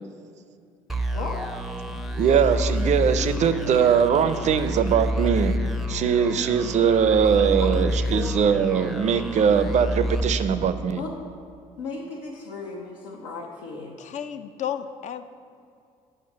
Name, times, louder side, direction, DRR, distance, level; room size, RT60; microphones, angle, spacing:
sound 1, 0.9-11.2, equal, ahead, 0.6 m, -29 dB
voice 1, 1.1-1.5 8.1-8.3 10.9-11.1 11.8-13.9, left 4 dB, 75° left, -4 dB, 0.9 m, -35 dB
voice 2, 2.1-5.6 5.9-11.0, right 7 dB, 40° right, 11 dB, 0.5 m, -21 dB
voice 3, 14.0-15.2, left 9 dB, 45° left, 10 dB, 0.5 m, -32 dB
8.8 x 5.0 x 5.3 m, 2.4 s
figure-of-eight pair, 55°, 18 cm